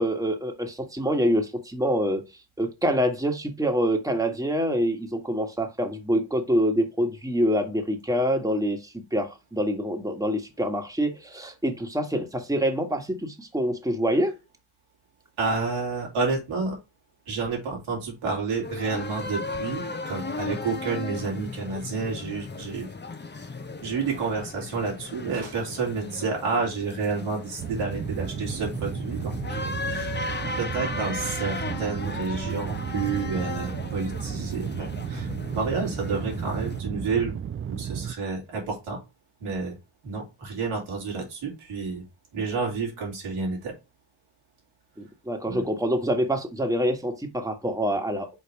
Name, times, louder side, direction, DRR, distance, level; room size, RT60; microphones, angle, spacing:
voice 1, 0.0-2.2 2.6-14.3 45.0-48.3, equal, 5° right, 1.6 m, -26 dB
voice 2, 15.4-16.8 17.3-22.9 23.8-30.2 30.6-37.4 37.7-39.0 39.4-39.8 40.0-42.0 42.3-43.7 45.5-45.6, right 4 dB, 80° right, 3.1 m, -30 dB
sound 1, 18.6-36.8, left 3 dB, 20° left, 1.0 m, -36 dB
sound 2, 27.6-38.1, right 8 dB, 30° right, 0.4 m, -33 dB
5.5 x 4.0 x 4.7 m
supercardioid pair, 45°, 49 cm